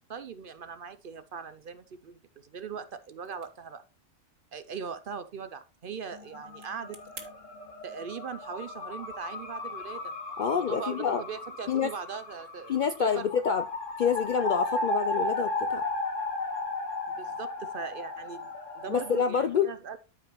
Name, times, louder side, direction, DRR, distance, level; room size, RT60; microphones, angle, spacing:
voice 1, 0.1-3.8 4.5-7.3 7.8-10.1 10.5-13.3 17.1-20.0, right 6 dB, 55° right, 0.7 m, -40 dB
sound 1, 3.1-7.3, right 2 dB, 30° right, 1.5 m, -53 dB
sound 2, 6.1-19.3, left 2 dB, 80° left, 2.0 m, -35 dB
voice 2, 10.4-11.2 11.7-11.9 12.7-13.7 14.0-15.8 18.9-19.7, left 7 dB, 60° left, 0.5 m, -27 dB
13.0 x 4.9 x 3.0 m
omnidirectional pair, 1.3 m